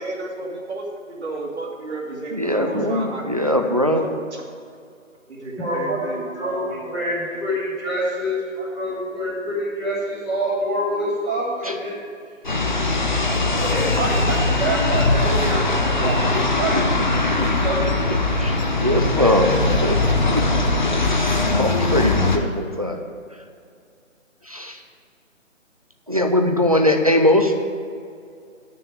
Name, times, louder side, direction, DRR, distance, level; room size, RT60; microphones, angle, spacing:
voice 1, 0.0-4.4 5.3-7.5, right 2 dB, 55° right, -3 dB, 2.2 m, -33 dB
voice 2, 2.3-4.1 11.6-11.7 17.4-17.5 18.4-19.5 19.8-20.0 20.3-20.4 20.8-20.9 21.2-21.3 21.6-23.0 24.5-24.8 26.1-27.5, left 1 dB, 30° right, 4 dB, 0.6 m, -21 dB
voice 3, 5.6-6.6 6.8-12.0 13.6-16.8 17.5-17.9 18.9-19.5, right 1 dB, 5° left, -13 dB, 1.3 m, -26 dB
sound 1, 12.4-22.4, left 2 dB, 35° left, 0.7 m, -20 dB
8.7 x 6.8 x 8.6 m, 2.2 s
hypercardioid pair, 175°, 39 cm